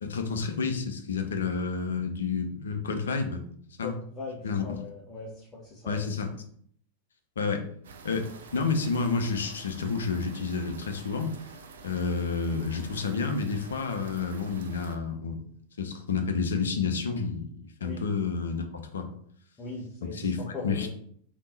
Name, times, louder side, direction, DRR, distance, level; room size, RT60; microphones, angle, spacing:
voice 1, 0.0-3.4 3.8-3.9 4.4-4.8 5.9-6.3 7.4-7.6 8.0-11.3 11.8-15.4 15.8-19.1 20.2-20.4 20.6-20.9, left 5 dB, 65° left, 6 dB, 0.6 m, -30 dB
voice 2, 3.8-6.1 17.8-18.1 19.6-20.9, left 3 dB, 15° left, -5 dB, 1.1 m, -40 dB
sound 1, 7.8-15.0, right 4 dB, 65° right, 0.5 m, -48 dB
3.6 x 2.9 x 3.9 m, 0.62 s
figure-of-eight pair, 90°, 0 cm